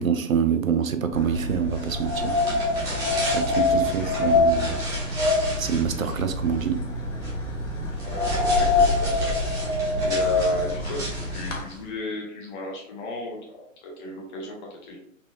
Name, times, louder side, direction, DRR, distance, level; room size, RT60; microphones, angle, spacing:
voice 1, 0.0-2.4 3.2-4.8 5.6-6.9, right 7 dB, 75° right, 9 dB, 0.6 m, -26 dB
sound 1, 1.1-11.6, equal, 60° left, 1.1 m, -33 dB
sound 2, 1.8-11.8, left 3 dB, 10° right, 0.5 m, -25 dB
voice 2, 3.5-3.9 8.0-9.3 10.0-15.0, left 2 dB, 35° left, -2 dB, 0.7 m, -35 dB
4.0 x 2.7 x 2.3 m, 0.71 s
figure-of-eight pair, 125°, 41 cm